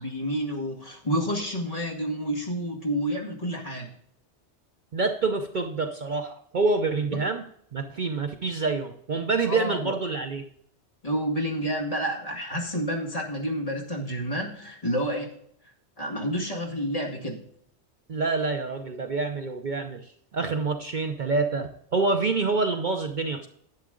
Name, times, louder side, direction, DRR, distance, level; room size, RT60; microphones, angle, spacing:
voice 1, 0.0-3.9 7.0-7.2 9.4-9.9 11.0-15.3 16.0-17.4, equal, 35° left, -2 dB, 2.1 m, -29 dB
voice 2, 4.9-7.4 7.7-10.4 18.1-23.5, right 3 dB, 50° right, 6 dB, 0.8 m, -27 dB
10.5 x 8.5 x 3.7 m, 0.67 s
omnidirectional pair, 1.2 m